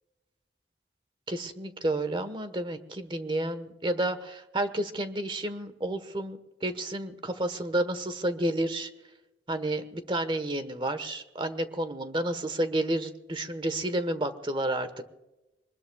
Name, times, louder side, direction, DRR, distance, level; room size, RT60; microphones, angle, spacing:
voice 1, 1.3-8.9 9.5-15.1, right 1 dB, 30° right, 10 dB, 1.3 m, -31 dB
25.5 x 20.0 x 2.4 m, 1.0 s
head